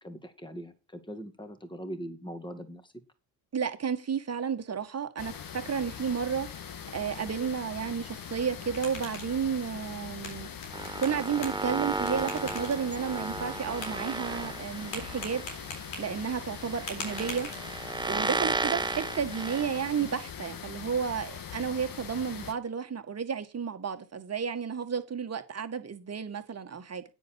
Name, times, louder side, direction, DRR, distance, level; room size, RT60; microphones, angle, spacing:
voice 1, 0.0-2.9 20.0-20.1, equal, 10° left, 2.3 m, -41 dB
voice 2, 3.5-6.5 6.9-10.5 11.0-15.4 15.7-17.5 18.0-27.0, right 6 dB, 30° right, 1.8 m, -32 dB
sound 1, 5.2-22.5, left 7 dB, 40° left, 1.7 m, -42 dB
sound 2, 8.4-18.1, left 2 dB, 75° left, 4.0 m, -45 dB
sound 3, 10.7-20.3, right 3 dB, 10° right, 0.6 m, -35 dB
10.0 x 7.9 x 4.7 m
figure-of-eight pair, 50°, 50 cm